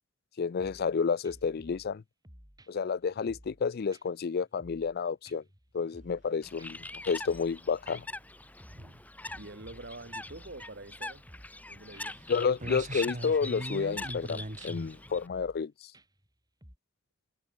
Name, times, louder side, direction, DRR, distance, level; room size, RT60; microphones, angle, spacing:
voice 1, 0.4-2.0 2.7-5.4 5.7-8.1 12.3-15.9, left 5 dB, 50° left, 0.4 m, -30 dB
sound 1, 0.6-0.9 1.2-1.9 2.2-3.6 3.9-4.0 4.4-5.0 5.2-6.3 6.6-6.7 7.0-7.6 7.9-9.0 9.3-10.9 11.3-11.6 11.9-12.0 12.4-13.0 13.3-13.6 13.9-14.3 14.6-14.7 15.1-15.6 15.9-16.3 16.6-16.8, equal, 20° right, 7.7 m, -55 dB
Bird, 6.4-15.3, left 2 dB, 10° left, 0.8 m, -43 dB
sound 2, 6.6-7.1 7.5-7.8 8.4-9.0 9.9-10.2 10.5-10.6 10.8-10.9 11.1-11.5 12.1-12.2 12.5-15.2, right 1 dB, 40° right, 3.3 m, -41 dB
voice 2, 9.3-11.3 11.7-12.2, right 2 dB, 55° right, 3.9 m, -46 dB
head